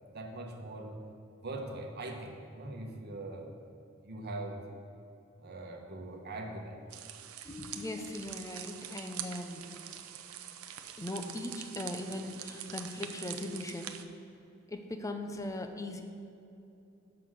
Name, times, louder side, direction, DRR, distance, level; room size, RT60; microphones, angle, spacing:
voice 1, 0.1-0.9 1.4-3.5 4.0-4.6 5.4-6.8, right 2 dB, 50° right, 1 dB, 1.0 m, -41 dB
sound 1, 6.9-14.0, right 10 dB, 90° right, 0.5 m, -44 dB
voice 2, 7.4-9.6 10.9-13.9 14.7-16.0, left 1 dB, 15° left, 5 dB, 0.6 m, -39 dB
6.8 x 5.6 x 6.4 m, 2.8 s
head